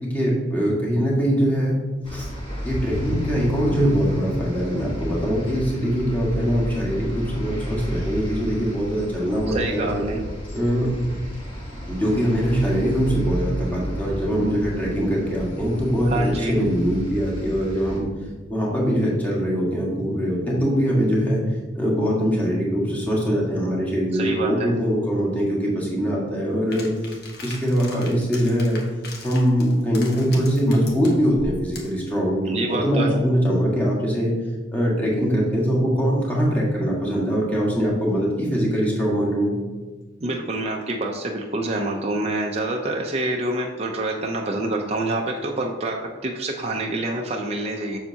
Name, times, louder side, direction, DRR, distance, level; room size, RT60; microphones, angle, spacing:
voice 1, 0.0-1.8 2.1-2.3 2.6-10.0 10.5-10.9 11.9-18.1 18.5-21.4 21.7-27.2 27.4-28.8 29.2-34.3 34.7-39.5, equal, 10° left, -4 dB, 1.7 m, -22 dB
sound 1, 2.0-18.0, equal, 30° left, 1.3 m, -32 dB
voice 2, 9.5-10.2 16.1-16.6 24.1-24.7 32.5-33.2 40.2-48.0, right 2 dB, 35° right, 0 dB, 0.6 m, -27 dB
sound 2, 26.7-32.0, left 2 dB, 55° left, 1.2 m, -39 dB
7.2 x 6.6 x 2.8 m, 1.3 s
head